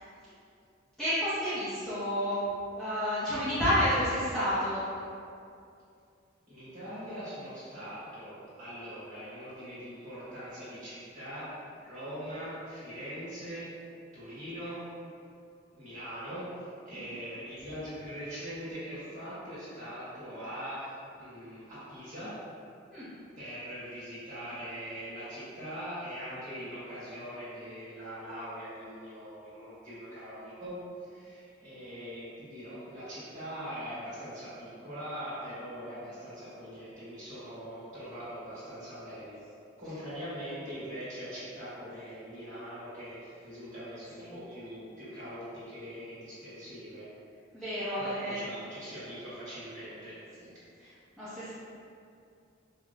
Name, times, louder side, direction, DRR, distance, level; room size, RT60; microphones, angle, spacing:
voice 1, 1.0-2.4 2.7-4.8 22.9-23.1 44.2-44.4 47.5-48.4 50.8-50.9 51.2-51.5, equal, 5° left, -14 dB, 0.6 m, -30 dB
voice 2, 6.5-13.7 14.1-14.9 15.7-22.4 23.4-39.4 39.8-47.1 48.0-50.3, equal, 40° right, -12 dB, 1.4 m, -42 dB
4.7 x 2.0 x 2.3 m, 2.5 s
head